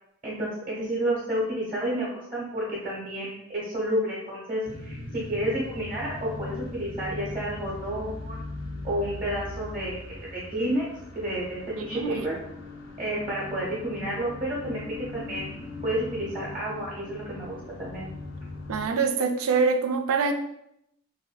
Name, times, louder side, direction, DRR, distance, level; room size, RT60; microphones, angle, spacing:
voice 1, 0.2-8.4 8.8-10.8 11.1-12.4 13.0-18.0, right 1 dB, 40° right, -6 dB, 0.8 m, -30 dB
sound 1, 4.7-18.9, left 2 dB, 50° left, 0.5 m, -40 dB
voice 2, 11.8-12.3 18.7-20.3, right 5 dB, 75° right, 6 dB, 0.3 m, -25 dB
3.1 x 2.5 x 2.2 m, 0.79 s
head